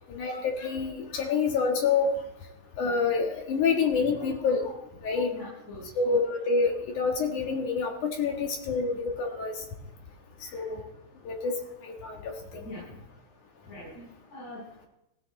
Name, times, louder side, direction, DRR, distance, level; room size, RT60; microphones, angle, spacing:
voice 1, 0.1-2.1 2.8-5.3 6.0-9.6 10.5-10.8 11.2-11.6 11.8-12.6, left 5 dB, 60° left, 1 dB, 2.2 m, -27 dB
voice 2, 5.3-6.0 9.8-9.9 10.4-10.7 12.5-13.0 13.7-14.9, left 1 dB, 35° left, -10 dB, 8.5 m, -44 dB
17.0 x 16.5 x 4.0 m, 0.89 s
omnidirectional pair, 5.7 m